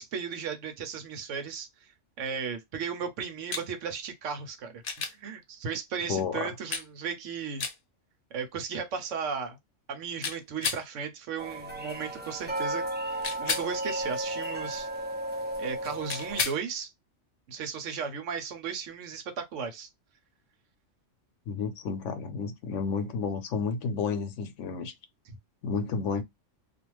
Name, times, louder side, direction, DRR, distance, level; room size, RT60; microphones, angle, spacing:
voice 1, 0.0-1.7 2.2-7.6 8.3-9.6 9.9-14.9 15.6-16.9 17.5-19.9 25.3-25.4, right 6 dB, 80° right, 1.1 m, -35 dB
sound 1, 3.5-3.7 4.8-5.2 6.7-6.9 7.6-7.8 10.2-10.8 13.2-13.7 16.1-16.6 18.9-19.0, left 5 dB, 55° left, 0.8 m, -31 dB
voice 2, 6.1-6.5 21.5-24.9 25.6-26.2, left 5 dB, 80° left, 1.0 m, -31 dB
sound 2, 11.4-16.4, right 1 dB, 15° right, 0.4 m, -34 dB
2.5 x 2.3 x 3.0 m
omnidirectional pair, 1.3 m